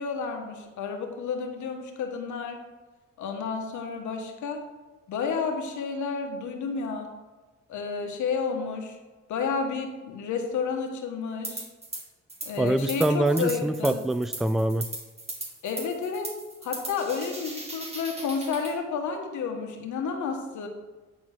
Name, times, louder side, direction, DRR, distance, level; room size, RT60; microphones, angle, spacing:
voice 1, 0.0-2.6 3.2-4.6 5.1-7.1 7.7-9.0 9.3-11.7 12.4-14.0 15.6-16.3 16.6-20.7, left 5 dB, 75° left, 3 dB, 1.5 m, -31 dB
sound 1, 11.4-12.0 12.3-18.7, right 2 dB, 20° right, 2.3 m, -38 dB
voice 2, 12.6-14.8, right 1 dB, ahead, 12 dB, 0.3 m, -24 dB
9.3 x 4.4 x 6.0 m, 1.2 s
cardioid pair, 90°, 30 cm